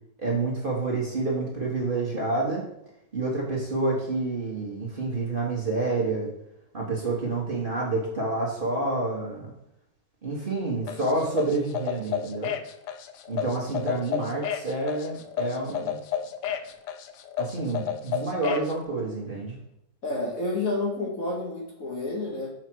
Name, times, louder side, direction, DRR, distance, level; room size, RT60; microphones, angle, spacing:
voice 1, 0.2-2.7 3.1-6.3 6.7-9.5 10.2-12.5 13.3-16.0 17.4-19.6, right 2 dB, 30° right, -3 dB, 1.4 m, -28 dB
sound 1, 10.9-18.7, left 9 dB, 75° left, 1.1 m, -31 dB
voice 2, 20.0-22.5, left 2 dB, 50° left, -1 dB, 1.7 m, -29 dB
6.0 x 5.0 x 4.6 m, 0.80 s
omnidirectional pair, 2.0 m